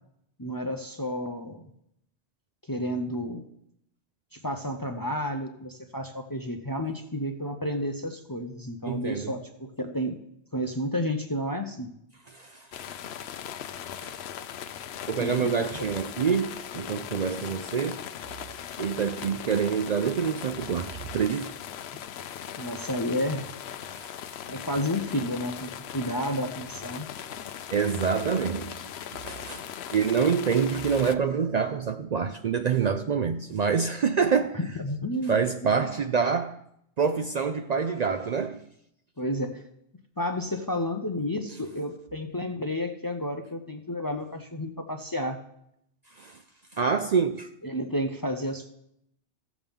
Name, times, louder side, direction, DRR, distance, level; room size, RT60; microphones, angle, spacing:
voice 1, 0.4-1.7 2.6-3.4 4.3-10.2 10.5-12.0 15.2-15.7 22.6-23.5 24.5-27.1 34.5-35.7 39.2-39.6 40.2-45.4 47.6-48.7, left 1 dB, 25° left, 0.6 m, -31 dB
voice 2, 8.9-9.3 12.3-12.6 14.0-14.1 15.1-18.0 18.8-21.6 24.0-24.1 27.7-29.7 29.9-34.6 35.3-36.6 37.0-38.6 46.2-46.4 46.8-47.5, right 6 dB, 60° right, 0.4 m, -26 dB
Inside a tent with rain (good for loop), 12.7-31.2, left 9 dB, 70° left, 0.8 m, -39 dB
15.5 x 7.2 x 3.6 m
omnidirectional pair, 1.2 m